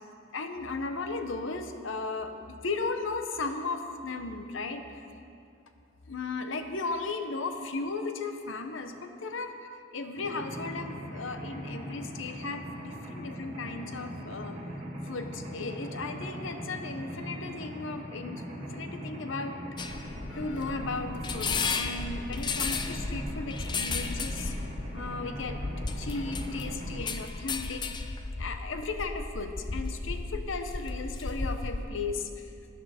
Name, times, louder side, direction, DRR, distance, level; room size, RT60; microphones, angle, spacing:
voice 1, 0.3-5.1 6.1-9.5 9.9-14.6 15.0-24.5 24.9-25.6 26.0-27.9 28.4-32.5, left 3 dB, 75° left, 7 dB, 0.8 m, -36 dB
Mechanisms, 10.2-27.0, equal, 35° right, 1.8 m, -40 dB
sound 1, 19.8-31.9, left 4 dB, 20° left, 0.4 m, -34 dB
12.5 x 9.3 x 4.2 m, 2.5 s
head